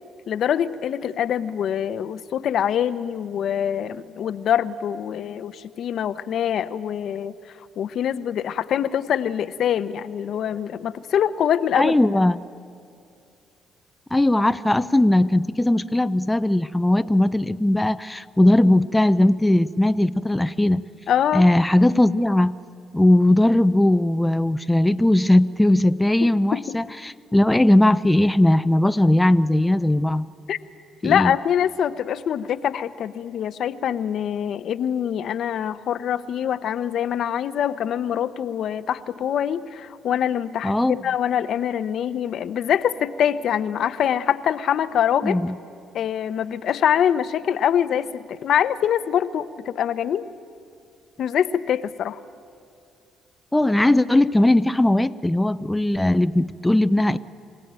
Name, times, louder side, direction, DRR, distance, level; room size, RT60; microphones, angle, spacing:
voice 1, 0.3-7.3 7.8-12.0 21.1-21.4 26.2-26.7 30.5-30.6 31.0-45.4 45.9-50.3 51.2-52.2, left 9 dB, 65° left, 13 dB, 0.8 m, -24 dB
voice 2, 11.8-12.4 14.1-20.8 21.3-22.5 22.9-30.3 31.0-31.3 40.6-41.0 45.2-45.6 53.5-57.2, left 1 dB, 10° left, 12 dB, 0.6 m, -19 dB
25.5 x 17.0 x 9.0 m, 2.5 s
supercardioid pair, 75°, 0 cm